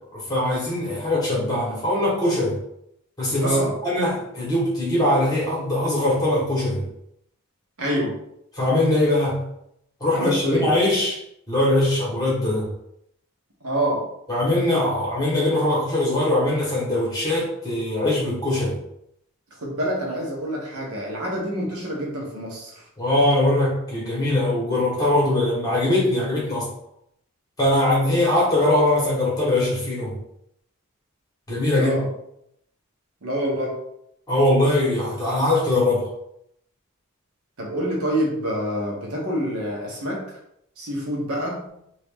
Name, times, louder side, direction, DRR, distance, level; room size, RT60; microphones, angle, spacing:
voice 1, 0.1-2.6 3.2-6.8 8.5-9.4 10.0-11.2 11.5-12.7 14.3-18.8 23.0-26.7 27.6-30.2 31.5-32.0 34.3-36.1, left 1 dB, 15° left, -6 dB, 1.4 m, -21 dB
voice 2, 3.4-3.8 7.8-8.2 10.1-10.7 13.6-14.1 19.6-22.7 31.8-32.1 33.2-33.8 37.6-40.4 40.8-41.7, right 1 dB, 90° right, -2 dB, 1.2 m, -26 dB
3.0 x 2.9 x 3.6 m, 0.75 s
head